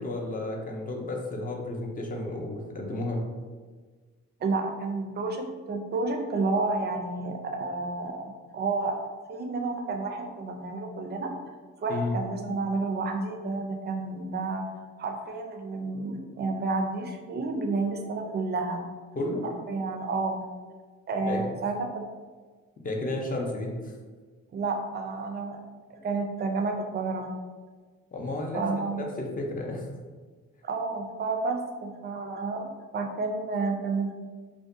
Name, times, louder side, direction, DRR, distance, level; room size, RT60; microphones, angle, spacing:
voice 1, 0.0-3.2 11.9-12.1 19.2-19.4 21.3-21.5 22.8-23.9 28.1-29.9, left 2 dB, 30° left, 1 dB, 0.5 m, -32 dB
voice 2, 4.4-8.2 8.5-8.9 9.3-11.3 11.8-14.6 15.0-18.9 19.4-20.4 21.1-22.0 24.5-25.6 25.9-27.3 28.5-29.0 30.6-32.7 32.9-34.3, right 3 dB, 35° right, 3 dB, 0.4 m, -30 dB
2.5 x 2.2 x 2.4 m, 1.4 s
cardioid pair, 90°, 30 cm